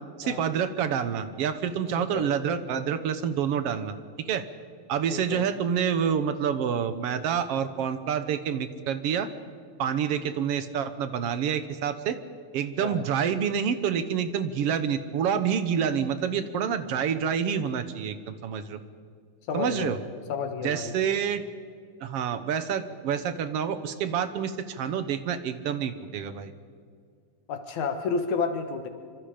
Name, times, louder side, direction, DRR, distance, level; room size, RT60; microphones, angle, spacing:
voice 1, 0.2-3.9 4.3-4.4 4.9-9.3 9.8-12.2 12.5-18.8 19.5-20.0 20.6-21.4 22.0-26.5, right 8 dB, 65° right, 11 dB, 1.9 m, -28 dB
voice 2, 2.0-2.3 5.1-5.5 12.8-13.1 19.5-20.0 20.3-20.9 27.5-28.9, left 5 dB, 80° left, 6 dB, 2.9 m, -31 dB
26.5 x 25.5 x 5.1 m, 2.1 s
omnidirectional pair, 3.3 m